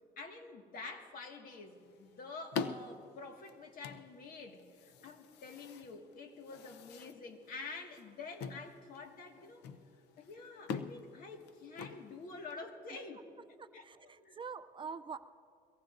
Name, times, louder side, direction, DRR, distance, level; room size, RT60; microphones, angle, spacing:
voice 1, 0.2-9.7 10.2-13.3 13.7-14.4, left 3 dB, 60° left, 3 dB, 1.8 m, -48 dB
sound 1, 1.5-12.6, left 6 dB, 80° left, 0.7 m, -46 dB
voice 2, 13.6-15.3, right 5 dB, 30° right, 11 dB, 0.4 m, -45 dB
23.5 x 18.0 x 2.6 m, 2.3 s
cardioid pair, 110°, 17 cm